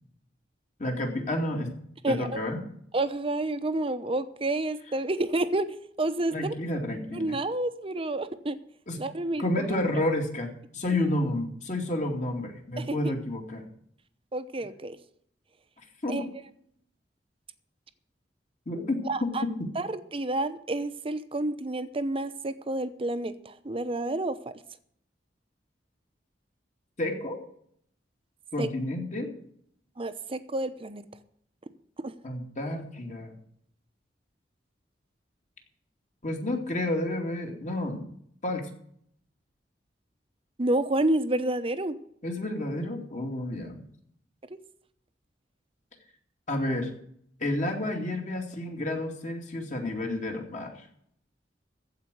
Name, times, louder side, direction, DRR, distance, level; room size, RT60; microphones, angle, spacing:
voice 1, 0.8-1.7 2.1-2.6 6.3-7.4 8.9-9.0 9.4-13.6 16.0-16.3 18.7-19.5 27.0-27.4 28.5-29.3 32.2-33.4 36.2-38.0 38.4-38.7 42.2-43.8 46.5-46.9 47.4-50.9, left 1 dB, 45° left, 2 dB, 2.4 m, -30 dB
voice 2, 2.9-6.5 7.1-8.6 9.0-9.4 9.7-9.8 12.8-13.1 14.3-15.0 16.1-16.2 19.1-19.4 19.8-24.4 28.6-28.7 30.0-31.0 32.0-32.1 40.6-41.9 44.5-44.6, right 2 dB, 30° right, 11 dB, 0.8 m, -29 dB
15.0 x 5.1 x 9.3 m, 0.68 s
head